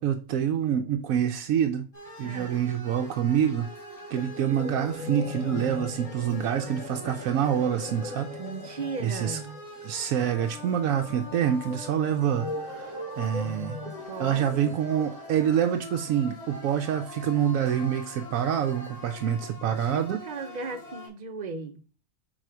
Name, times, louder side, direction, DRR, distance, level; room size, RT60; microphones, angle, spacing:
voice 1, 0.0-1.8 2.2-3.7 4.1-8.4 9.0-9.4 9.8-13.8 14.2-20.2, right 9 dB, 75° right, 1.0 m, -26 dB
sound 1, 1.9-21.1, equal, 20° left, 3.1 m, -43 dB
voice 2, 2.2-2.6 8.4-9.7 13.9-14.5 19.8-21.8, right 4 dB, 45° right, 0.6 m, -37 dB
sound 2, 4.2-15.5, left 3 dB, 65° left, 1.3 m, -40 dB
6.3 x 4.1 x 4.5 m
omnidirectional pair, 1.5 m